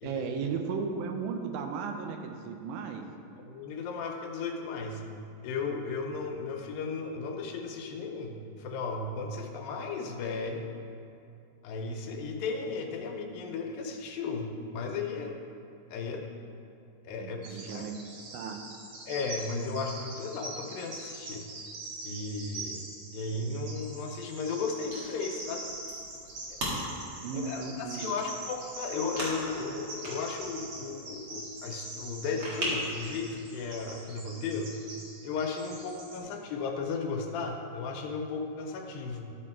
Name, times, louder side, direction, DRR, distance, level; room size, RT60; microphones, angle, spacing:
voice 1, 0.0-3.1 17.2-17.9 18.3-18.6 27.2-28.2, right 5 dB, 85° right, 4 dB, 2.5 m, -35 dB
voice 2, 3.4-5.0 5.4-10.7 11.6-15.3 15.9-16.3 17.0-17.9 19.1-21.5 22.0-25.6 27.3-34.8 35.2-39.3, left 4 dB, 85° left, 2 dB, 2.5 m, -35 dB
Bird vocalization bird call bird song, 17.4-36.2, right 2 dB, 60° right, 2.4 m, -44 dB
sound 1, 24.9-33.1, equal, 45° right, 2.2 m, -40 dB
13.0 x 4.5 x 4.4 m, 2.5 s
omnidirectional pair, 4.0 m